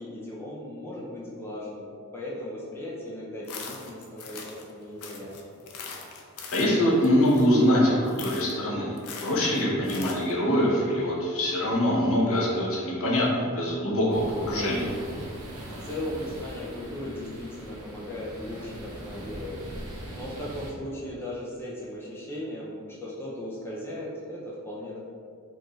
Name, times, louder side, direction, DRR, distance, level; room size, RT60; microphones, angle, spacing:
voice 1, 0.0-5.6 15.6-25.0, left 1 dB, 10° left, -6 dB, 0.4 m, -37 dB
sound 1, 3.4-4.7 5.0-7.7 8.0-8.6 9.0-10.3, left 5 dB, 85° left, 0.5 m, -41 dB
voice 2, 6.5-8.9 9.2-14.9, equal, 65° left, -5 dB, 1.0 m, -24 dB
sound 2, 14.1-20.7, right 1 dB, 75° right, 0.7 m, -40 dB
4.5 x 2.6 x 3.0 m, 2.3 s
head